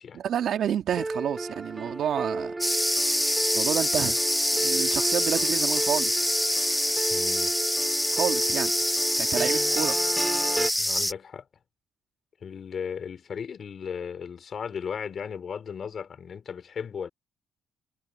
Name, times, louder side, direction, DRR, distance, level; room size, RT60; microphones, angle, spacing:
voice 1, 0.1-2.5 3.5-4.2 4.6-6.4 8.1-8.7 9.2-10.0, right 9 dB, 70° right, 2.5 m, -29 dB
sound 1, 1.0-10.7, right 2 dB, 20° right, 5.5 m, -33 dB
sound 2, 2.6-11.1, left 1 dB, 5° left, 0.3 m, -25 dB
voice 2, 7.1-7.5 10.8-11.5 12.4-17.1, left 7 dB, 50° left, 3.6 m, -36 dB
cardioid pair, 90°, 0 cm